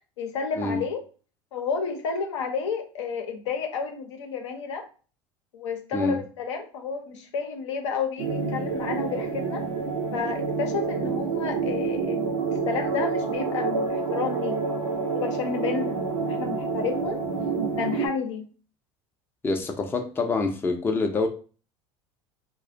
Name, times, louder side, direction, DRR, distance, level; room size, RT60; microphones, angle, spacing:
voice 1, 0.2-1.0 1.5-4.8 5.5-9.6 10.1-16.0 16.2-17.2 17.7-18.5, left 5 dB, 75° left, 0.6 m, -31 dB
sound 1, 8.2-18.1, right 5 dB, 70° right, 0.6 m, -28 dB
voice 2, 19.4-21.3, left 3 dB, 15° left, 0.4 m, -26 dB
2.3 x 2.1 x 2.5 m
hypercardioid pair, 75°, 15 cm